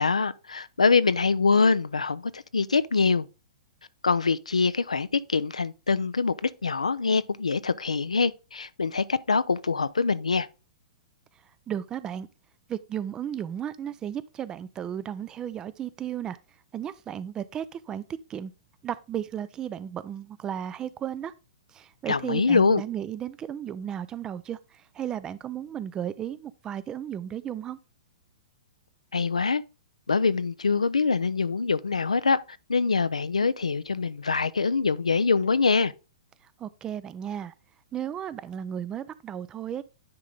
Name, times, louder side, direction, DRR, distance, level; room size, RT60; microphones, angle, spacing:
voice 1, 0.0-3.3 4.0-10.5 22.1-22.8 29.1-29.6 30.1-32.4 32.7-35.9, left 4 dB, 85° left, 0.4 m, -24 dB
voice 2, 11.7-12.3 12.7-16.4 16.7-18.0 18.3-18.5 18.8-21.3 21.7-27.8 36.6-37.5 37.9-39.8, right 9 dB, 20° right, 0.4 m, -34 dB
9.6 x 3.8 x 3.8 m
figure-of-eight pair, 115°, 3 cm